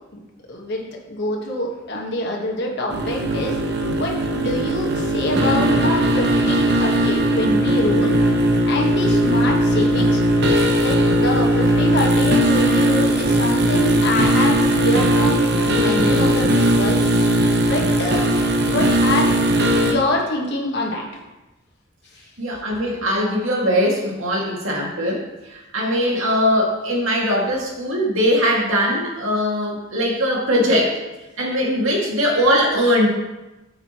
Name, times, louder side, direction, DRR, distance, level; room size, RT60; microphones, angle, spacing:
voice 1, 0.5-3.6 3.9-8.2 8.7-10.2 10.8-17.0 17.6-18.2 18.7-19.3 19.8-21.2, left 1 dB, 55° left, -1 dB, 1.4 m, -25 dB
sound 1, 2.9-19.9, right 1 dB, 55° right, 0.9 m, -18 dB
voice 2, 22.4-31.0 31.4-33.1, equal, 85° right, -2 dB, 2.1 m, -20 dB
9.9 x 6.6 x 3.0 m, 1.1 s
head